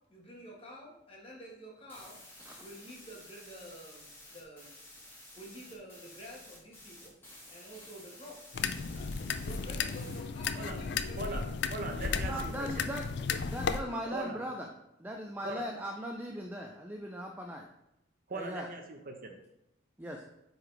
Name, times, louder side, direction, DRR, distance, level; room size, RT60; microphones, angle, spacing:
voice 1, 0.1-2.2 2.6-4.7 5.3-7.1 7.5-8.4 8.9-9.1 9.4-11.4 13.7-14.2, equal, 30° left, -3 dB, 1.5 m, -49 dB
sound 1, 1.9-10.2, left 1 dB, 10° left, 1.5 m, -53 dB
sound 2, 8.5-13.8, left 5 dB, 60° left, 0.4 m, -34 dB
voice 2, 11.7-12.9 14.1-14.4 15.4-15.7 18.3-19.4, right 2 dB, 45° right, 3 dB, 0.8 m, -40 dB
voice 3, 12.2-13.1 13.5-14.7 15.0-17.7 18.3-18.7 20.0-20.2, equal, 10° right, 1 dB, 0.4 m, -39 dB
8.9 x 4.0 x 3.3 m, 0.84 s
head